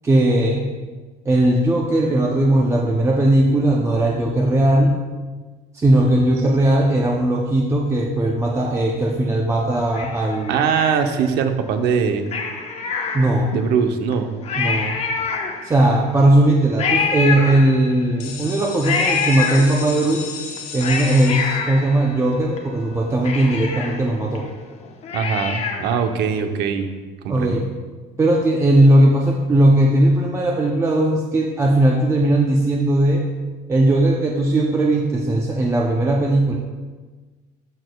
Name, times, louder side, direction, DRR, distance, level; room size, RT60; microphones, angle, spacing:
voice 1, 0.0-0.7 1.3-5.0 5.7-10.6 13.1-13.5 14.6-14.9 15.6-20.3 20.7-24.5 27.3-27.7 28.2-33.3 33.7-36.6, right 1 dB, 15° right, 0 dB, 0.6 m, -18 dB
Cat, 9.9-11.4 12.3-13.7 14.1-14.2 14.4-15.9 16.8-18.1 18.8-20.1 20.6-22.6 22.9-23.0 23.2-26.0 26.4-26.5, left 5 dB, 35° left, 0.9 m, -26 dB
voice 2, 10.5-12.3 13.5-14.4 25.1-26.9 27.2-27.6, right 6 dB, 65° right, 7 dB, 0.8 m, -21 dB
sound 1, 18.2-23.8, left 6 dB, 70° left, 1.7 m, -36 dB
12.5 x 6.5 x 2.3 m, 1.4 s
cardioid pair, 140°, 18 cm